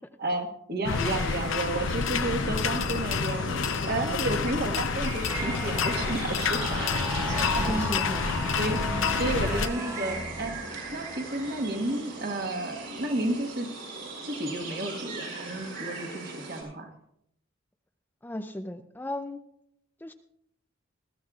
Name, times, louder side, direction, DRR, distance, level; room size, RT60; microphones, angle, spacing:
voice 1, 0.2-7.9 8.2-8.8 9.2-10.5 10.9-13.7 14.2-16.9, right 2 dB, 50° right, 4 dB, 1.4 m, -32 dB
sound 1, 0.8-9.7, left 5 dB, 65° left, 0.6 m, -28 dB
sound 2, 0.9-16.6, right 3 dB, 65° right, 5.8 m, -40 dB
sound 3, 5.3-14.6 15.1-15.4 15.8-16.2, right 1 dB, 15° right, 0.8 m, -39 dB
voice 2, 7.5-8.5 12.0-12.1 18.2-19.4 20.0-20.1, left 1 dB, 10° left, 7 dB, 0.4 m, -36 dB
21.0 x 13.5 x 2.4 m, 0.78 s
head